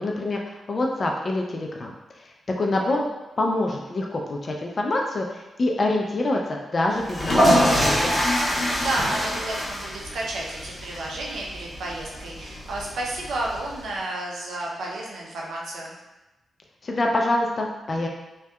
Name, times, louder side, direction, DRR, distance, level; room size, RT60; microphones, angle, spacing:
voice 1, 0.0-1.9 2.6-3.1 3.4-8.3 16.8-18.1, left 2 dB, 45° left, 0 dB, 0.3 m, -26 dB
sound 1, 7.0-13.8, equal, 10° left, 0.9 m, -25 dB
voice 2, 8.5-15.9, right 2 dB, 85° right, -2 dB, 0.5 m, -31 dB
2.7 x 2.2 x 2.2 m, 1.0 s
cardioid pair, 75°, 0 cm